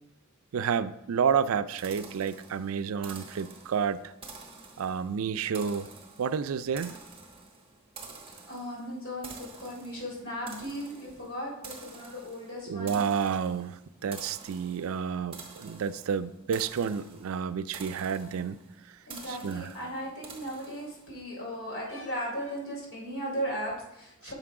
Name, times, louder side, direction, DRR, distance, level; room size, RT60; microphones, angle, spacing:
voice 1, 0.5-4.1 4.8-5.9 6.2-7.0 12.7-18.6 19.3-19.7, right 7 dB, 75° right, 14 dB, 0.4 m, -30 dB
sound 1, 1.8-21.2, right 4 dB, 25° right, 1.0 m, -49 dB
voice 2, 8.5-13.0 19.1-24.3, equal, 65° left, -3 dB, 3.5 m, -37 dB
6.9 x 5.9 x 4.8 m, 0.84 s
head